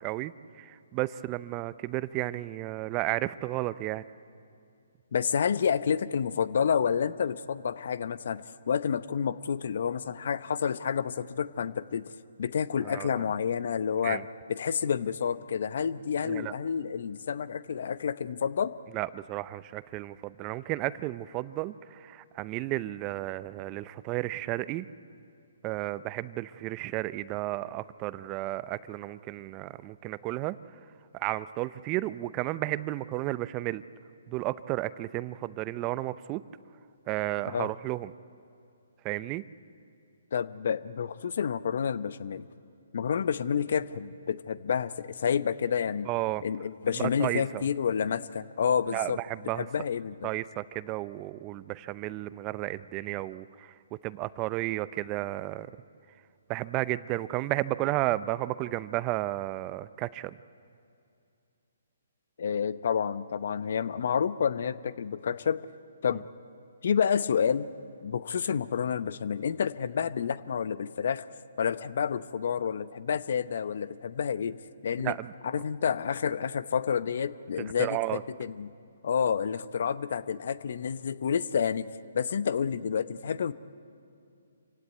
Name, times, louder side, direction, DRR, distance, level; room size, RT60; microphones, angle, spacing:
voice 1, 0.0-4.0 12.8-13.2 14.0-14.2 16.3-16.5 18.9-24.9 25.6-30.6 31.1-33.8 34.3-36.4 37.1-38.1 39.0-39.4 46.1-46.4 47.0-47.6 48.9-49.7 50.2-53.7 54.0-55.7 56.5-60.4 75.0-75.3 77.6-78.2, right 17 dB, 25° right, 17 dB, 0.5 m, -33 dB
voice 2, 5.1-12.1 12.4-14.2 14.5-18.7 37.5-37.7 40.3-42.4 42.9-46.1 46.4-49.2 49.5-50.3 62.4-65.6 66.0-66.2 66.8-67.7 68.0-71.2 71.6-75.2 75.4-78.7 79.0-81.9 82.1-83.5, left 7 dB, 60° left, 15 dB, 0.8 m, -29 dB
26.0 x 16.5 x 9.2 m, 2.5 s
hypercardioid pair, 140°, 0 cm